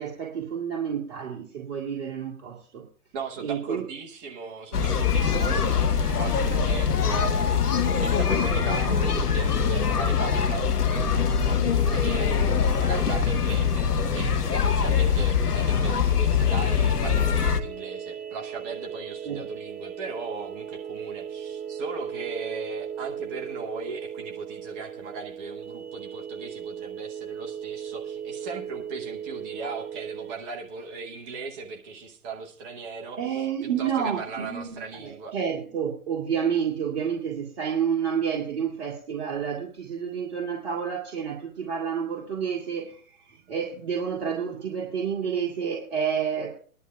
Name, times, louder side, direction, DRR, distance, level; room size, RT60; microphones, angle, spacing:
voice 1, 0.0-2.8 3.4-3.8 19.3-19.4 33.2-43.0 43.3-46.6, right 7 dB, 45° right, -2 dB, 2.0 m, -29 dB
voice 2, 3.1-5.7 6.0-35.3, right 4 dB, 15° right, 2 dB, 0.8 m, -38 dB
sound 1, 4.7-17.6, left 6 dB, 80° left, 1.1 m, -23 dB
sound 2, 5.5-12.6, left 9 dB, 35° left, 0.6 m, -35 dB
sound 3, 16.7-30.3, right 8 dB, 75° right, 0.9 m, -37 dB
22.0 x 11.0 x 2.3 m, 0.42 s
figure-of-eight pair, 135°, 46 cm